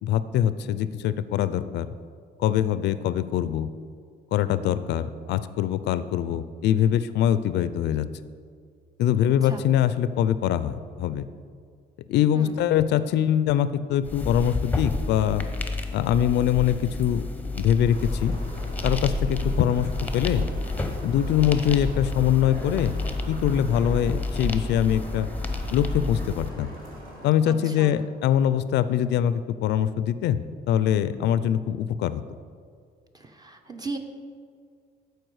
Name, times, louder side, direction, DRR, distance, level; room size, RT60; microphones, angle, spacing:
voice 1, 0.0-1.9 2.4-3.7 4.3-8.1 9.0-11.3 12.1-15.5 15.9-17.2 17.5-18.3 18.8-19.9 20.1-20.5 21.0-23.0 23.3-25.3 25.7-26.7 27.2-30.4 30.7-32.2, left 10 dB, 75° left, 14 dB, 0.4 m, -23 dB
sound 1, 14.0-26.5, left 2 dB, 10° left, 0.8 m, -30 dB
sound 2, 17.8-27.3, right 1 dB, 55° right, 2.4 m, -43 dB
voice 2, 27.4-27.9 33.1-34.0, right 3 dB, 20° right, 5 dB, 0.8 m, -37 dB
12.5 x 4.7 x 4.8 m, 2.1 s
cardioid pair, 110°, 18 cm